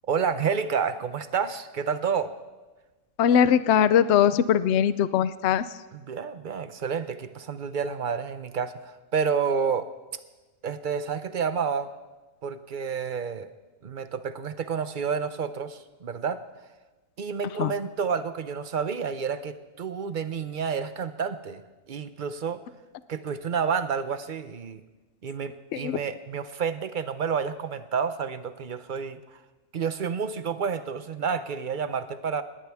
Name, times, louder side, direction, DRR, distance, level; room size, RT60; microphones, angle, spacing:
voice 1, 0.1-2.3 5.9-9.9 10.6-11.9 12.4-13.5 13.8-16.4 17.2-21.6 21.9-22.6 23.1-24.8 25.2-29.2 29.7-32.4, right 6 dB, 50° right, 12 dB, 0.7 m, -29 dB
voice 2, 3.2-5.6 17.6-17.7 25.7-26.0, left 9 dB, 60° left, 15 dB, 0.8 m, -21 dB
20.0 x 18.0 x 3.5 m, 1.2 s
omnidirectional pair, 1.5 m